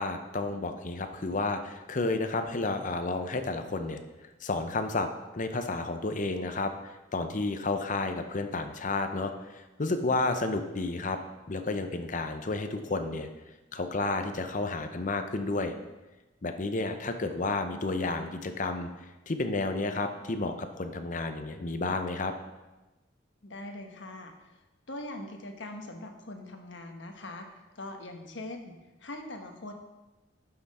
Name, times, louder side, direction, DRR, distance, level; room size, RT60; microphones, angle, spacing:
voice 1, 0.0-4.0 4.4-11.2 11.5-13.3 13.7-15.7 16.4-18.9 19.3-22.3, left 3 dB, 45° left, 7 dB, 0.8 m, -31 dB
voice 2, 23.4-24.3 24.9-29.7, left 1 dB, 85° left, 4 dB, 1.2 m, -42 dB
11.5 x 5.9 x 4.2 m, 1.1 s
head